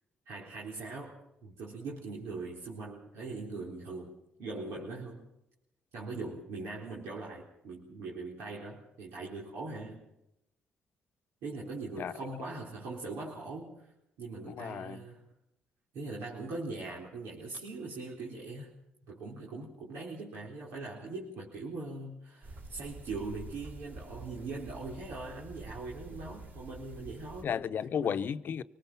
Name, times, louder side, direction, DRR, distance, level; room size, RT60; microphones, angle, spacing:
voice 1, 0.3-1.1 1.4-5.2 5.9-10.0 11.4-13.9 14.2-15.3 15.9-18.7 19.1-27.5 28.0-28.2, right 3 dB, 85° right, 4.1 m, -41 dB
voice 2, 14.4-15.0 27.4-28.6, left 8 dB, 60° left, 0.8 m, -33 dB
sound 1, 22.4-27.4, right 2 dB, 50° right, 3.6 m, -48 dB
26.0 x 19.0 x 5.9 m
cardioid pair, 75°, 4 cm